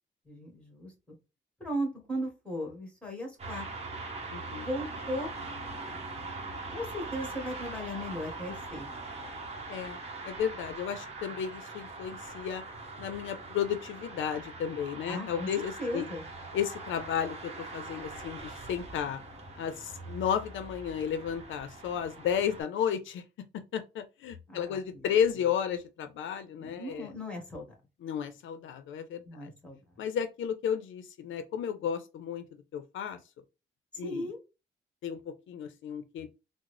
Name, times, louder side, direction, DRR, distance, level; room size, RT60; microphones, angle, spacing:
voice 1, 0.2-1.1 1.6-3.6 4.5-5.3 6.7-8.9 15.1-16.3 24.5-25.0 26.6-27.7 29.2-29.8 33.9-34.4, equal, 5° left, 1.4 m, -37 dB
sound 1, 3.4-22.6, right 3 dB, 30° right, 1.0 m, -42 dB
voice 2, 4.3-4.7 9.7-12.6 13.0-16.1 16.5-19.2 19.6-23.2 23.7-27.1 28.0-29.5 30.0-32.4 32.7-33.2 34.0-34.3 35.0-36.3, left 8 dB, 80° left, 0.5 m, -33 dB
3.7 x 2.0 x 3.0 m
cardioid pair, 120°, 20 cm